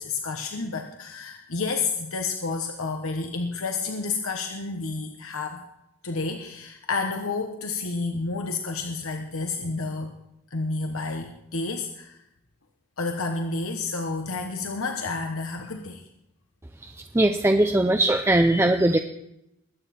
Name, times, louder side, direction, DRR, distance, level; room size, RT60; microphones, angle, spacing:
voice 1, 0.0-5.6 6.0-10.1 10.5-12.1 13.0-16.0, left 3 dB, 80° left, 4 dB, 1.1 m, -30 dB
voice 2, 17.1-19.0, right 1 dB, 10° right, 5 dB, 0.5 m, -20 dB
21.0 x 9.2 x 4.3 m, 0.82 s
head